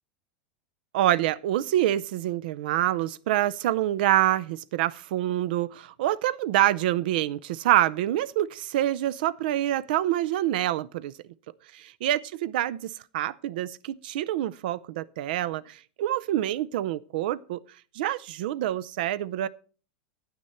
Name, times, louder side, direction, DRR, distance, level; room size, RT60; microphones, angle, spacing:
voice 1, 0.9-11.1 11.7-17.6 17.9-19.5, right 13 dB, 70° right, 0.5 m, -26 dB
10.0 x 9.5 x 4.3 m
supercardioid pair, 150°, 5 cm